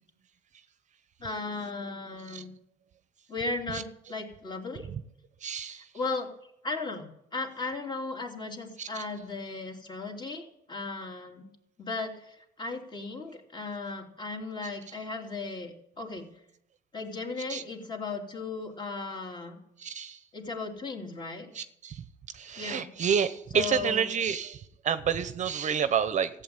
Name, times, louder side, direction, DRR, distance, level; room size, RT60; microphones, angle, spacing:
voice 1, 1.2-2.5 3.3-4.9 5.7-6.3 6.6-11.5 11.8-16.3 16.9-19.6 20.3-21.5 22.6-22.9 23.5-24.1, left 3 dB, 25° left, 2 dB, 3.1 m, -36 dB
voice 2, 5.4-5.9 8.8-9.0 17.5-17.6 19.8-20.2 21.5-22.0 22.3-26.4, right 7 dB, 45° right, 12 dB, 0.8 m, -29 dB
14.5 x 8.3 x 9.0 m, 0.78 s
cardioid pair, 110°, 17 cm